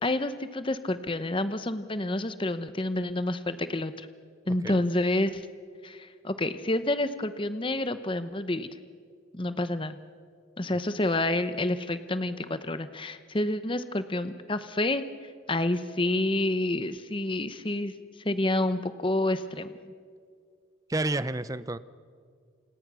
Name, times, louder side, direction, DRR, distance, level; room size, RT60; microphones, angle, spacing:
voice 1, 0.0-4.1 4.5-5.4 5.8-8.7 9.3-10.0 10.6-15.0 15.5-17.9 18.2-19.9, left 1 dB, 25° left, 11 dB, 0.8 m, -29 dB
voice 2, 20.9-21.8, right 2 dB, 15° right, 15 dB, 0.6 m, -29 dB
29.0 x 27.0 x 6.2 m, 2.1 s
head